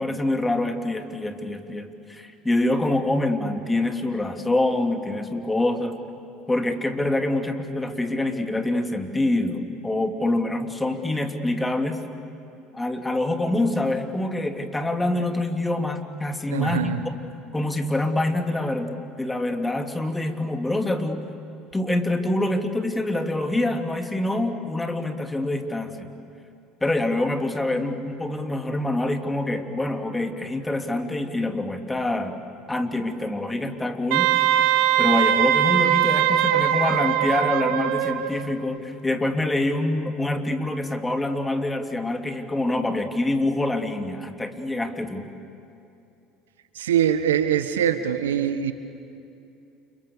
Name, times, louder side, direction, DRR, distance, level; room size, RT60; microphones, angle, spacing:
voice 1, 0.0-6.0 6.5-12.0 12.7-16.9 17.5-21.2 21.7-26.1 26.8-32.4 32.7-34.3 35.0-45.3, left 2 dB, 15° left, 6 dB, 2.9 m, -25 dB
voice 2, 16.5-17.0 46.7-48.7, right 9 dB, 85° right, 10 dB, 1.3 m, -23 dB
Wind instrument woodwind instrument, 34.1-38.3, right 11 dB, 65° right, 1.7 m, -21 dB
30.0 x 29.0 x 6.9 m, 2.7 s
hypercardioid pair, 70°, 0 cm